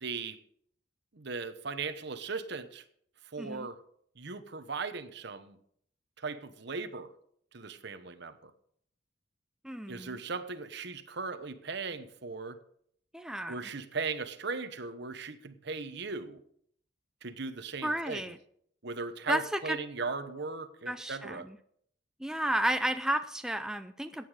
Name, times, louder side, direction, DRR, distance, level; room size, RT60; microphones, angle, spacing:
voice 1, 0.0-0.4 1.1-2.8 3.3-3.8 4.2-5.6 6.2-7.1 7.5-8.5 9.9-12.6 13.5-16.4 17.2-18.3 18.8-21.5, right 4 dB, 60° right, 11 dB, 1.0 m, -38 dB
voice 2, 3.4-3.7 9.6-10.2 13.1-13.6 17.8-18.4 19.3-19.8 20.9-21.6 22.2-24.3, right 1 dB, 5° right, 8 dB, 0.5 m, -32 dB
15.0 x 9.4 x 5.0 m, 0.66 s
head